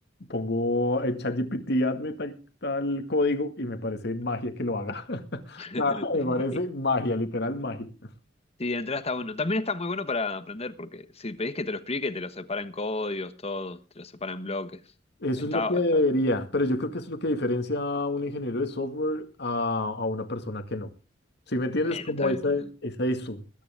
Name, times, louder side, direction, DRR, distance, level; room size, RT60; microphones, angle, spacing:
voice 1, 0.3-8.1 15.2-20.9 21.5-23.4, left 2 dB, 60° left, 2.0 m, -28 dB
voice 2, 5.6-6.6 8.6-14.8 15.5-16.0 21.8-22.7, left 3 dB, 35° left, 1.2 m, -32 dB
21.5 x 10.0 x 3.6 m
head